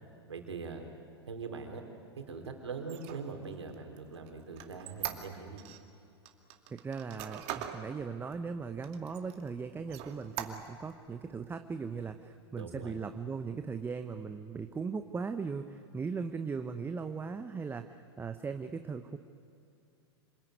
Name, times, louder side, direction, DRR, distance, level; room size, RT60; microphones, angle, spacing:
voice 1, 0.3-0.9 1.3-1.8 2.2-5.7 12.6-13.0, right 4 dB, 85° right, 3 dB, 3.9 m, -42 dB
Squeak, 2.8-5.8 6.3-7.8 8.3-8.4 8.8-9.5 9.9-10.9, right 12 dB, 45° right, 2.4 m, -41 dB
voice 2, 6.7-19.2, right 5 dB, 15° right, 8 dB, 1.0 m, -38 dB
27.0 x 20.5 x 9.5 m, 2.5 s
hypercardioid pair, 105°, 14 cm